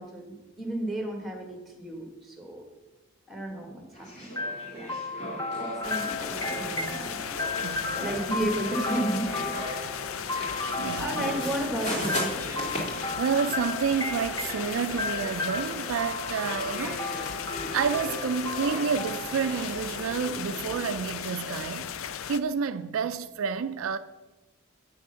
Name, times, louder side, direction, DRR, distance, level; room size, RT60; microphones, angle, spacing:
voice 1, 0.0-2.6 3.3-4.4 4.7-5.0 5.5-7.7 8.0-10.0 11.0-12.4, right 1 dB, ahead, 1.5 m, -33 dB
sound 1, 3.9-21.6, equal, 35° left, 2.4 m, -39 dB
sound 2, 4.4-20.1, left 2 dB, 15° left, 0.6 m, -35 dB
sound 3, 5.8-22.4, left 8 dB, 70° left, 0.5 m, -36 dB
voice 2, 7.6-8.1 10.8-11.4 13.2-17.0 17.7-21.9 22.3-24.0, right 6 dB, 70° right, 0.4 m, -29 dB
8.6 x 6.2 x 5.6 m
head